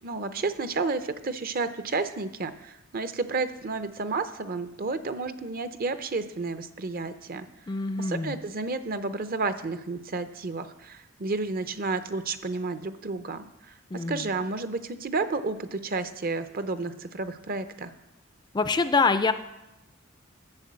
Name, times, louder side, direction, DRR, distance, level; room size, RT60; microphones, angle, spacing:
voice 1, 0.0-7.5 8.0-17.9, right 3 dB, 45° right, 10 dB, 0.6 m, -31 dB
voice 2, 7.7-8.4 13.9-14.3 18.5-19.3, left 4 dB, 20° left, 10 dB, 0.4 m, -25 dB
10.5 x 7.1 x 7.5 m, 0.92 s
head